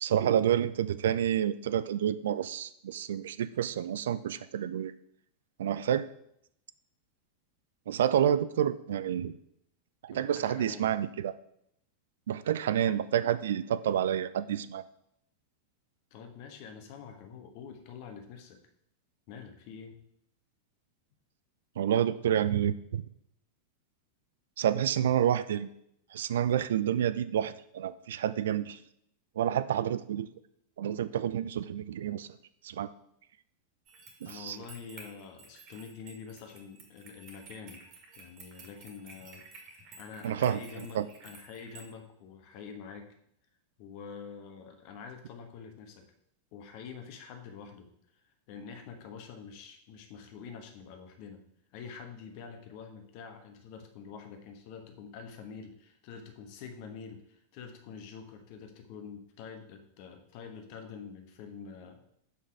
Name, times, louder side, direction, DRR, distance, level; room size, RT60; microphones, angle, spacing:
voice 1, 0.0-4.9 5.6-6.1 7.9-9.3 10.0-11.3 12.3-14.8 21.8-23.0 24.6-25.7 26.1-28.8 29.4-30.3 30.8-32.3 32.6-32.9 34.2-34.6 40.2-40.6 40.9-41.1, right 10 dB, 60° right, 15 dB, 0.3 m, -29 dB
voice 2, 10.1-10.9 12.9-13.0 16.1-18.6 19.3-20.0 34.2-37.8 38.2-43.1 43.8-46.1 46.5-47.9 48.5-51.4 51.7-62.0, left 6 dB, 45° left, 6 dB, 1.2 m, -46 dB
sound 1, 33.9-41.9, right 3 dB, 35° right, 1.8 m, -53 dB
6.4 x 5.4 x 4.9 m, 0.73 s
figure-of-eight pair, 90°, 0 cm